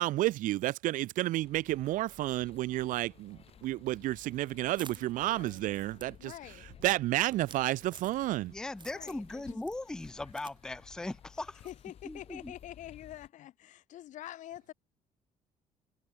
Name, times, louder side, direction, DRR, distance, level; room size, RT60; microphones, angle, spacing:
voice 1, 0.0-6.3 6.8-8.5, right 16 dB, 70° right, 0.6 m, -31 dB
sound 1, 1.4-13.3, left 8 dB, 45° left, 2.9 m, -57 dB
sound 2, 4.1-8.5 8.8-9.3 9.6-10.6 10.8-10.9 11.6-11.8, right 6 dB, 35° right, 6.8 m, -52 dB
voice 2, 5.2-5.6 6.2-6.7 8.9-9.6 11.6-14.7, left 13 dB, 65° left, 1.2 m, -46 dB
voice 3, 8.5-11.7 12.0-12.5, left 2 dB, 5° left, 0.4 m, -39 dB
cardioid pair, 125°, 14 cm